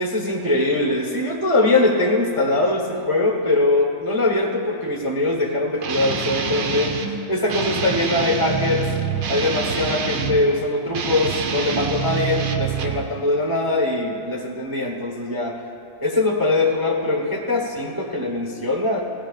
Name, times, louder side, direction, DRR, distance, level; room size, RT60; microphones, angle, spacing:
voice 1, 0.0-6.9 7.3-8.9 9.3-15.6 16.0-19.0, left 2 dB, 20° right, 0 dB, 0.6 m, -22 dB
Guitar, 5.8-7.1 7.5-10.4 10.9-13.1, right 6 dB, 70° right, 1.6 m, -26 dB
19.0 x 18.0 x 2.5 m, 2.7 s
omnidirectional pair, 2.2 m